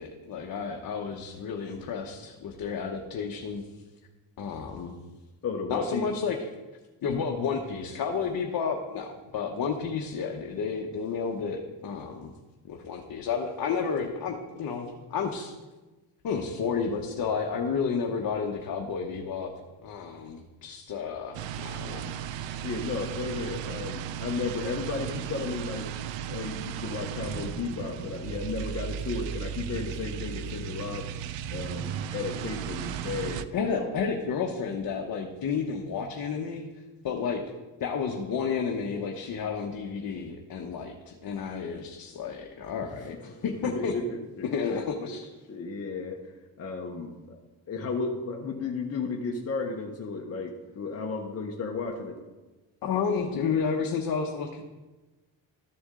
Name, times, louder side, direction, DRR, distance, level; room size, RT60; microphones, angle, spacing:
voice 1, 0.0-3.6 4.4-4.9 5.7-6.4 7.0-12.3 12.7-15.5 16.2-19.5 19.8-22.1 33.5-36.7 37.0-37.4 37.8-43.9 44.4-45.3 52.8-54.6, left 6 dB, 55° left, 1 dB, 1.0 m, -31 dB
voice 2, 5.4-6.1 22.6-25.9 26.3-31.1 31.5-33.9 42.3-42.4 42.8-43.4 43.6-45.2 45.5-46.2 46.6-47.4 47.7-52.2, left 4 dB, 35° left, 0 dB, 1.0 m, -34 dB
sound 1, 21.3-33.4, right 9 dB, 85° right, 0.6 m, -35 dB
13.0 x 6.9 x 3.7 m, 1.2 s
cardioid pair, 125°, 43 cm